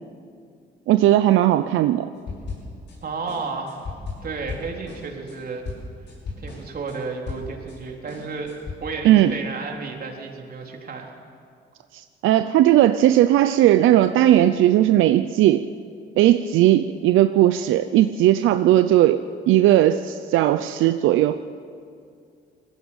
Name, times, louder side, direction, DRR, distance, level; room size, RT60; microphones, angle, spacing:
voice 1, 0.9-2.1 9.0-9.3 11.9-15.6 16.2-21.4, right 13 dB, 90° right, 10 dB, 0.6 m, -17 dB
sound 1, 2.3-3.0 3.3-7.8 8.1-8.7, left 4 dB, 65° left, 6.6 m, -36 dB
voice 2, 3.0-3.8 4.2-5.6 6.4-8.5 8.8-11.1, right 4 dB, 50° right, 1 dB, 4.0 m, -32 dB
20.5 x 15.5 x 8.9 m, 2.3 s
cardioid pair, 90°, 20 cm